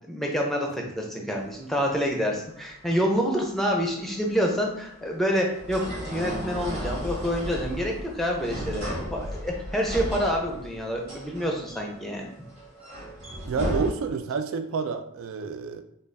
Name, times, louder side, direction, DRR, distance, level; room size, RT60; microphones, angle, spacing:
voice 1, 0.1-12.3, equal, ahead, 0 dB, 0.5 m, -27 dB
sound 1, 1.4-13.9, equal, 30° right, 1.1 m, -35 dB
voice 2, 13.4-15.8, right 5 dB, 75° right, 7 dB, 0.3 m, -29 dB
3.8 x 2.3 x 3.3 m, 0.72 s
head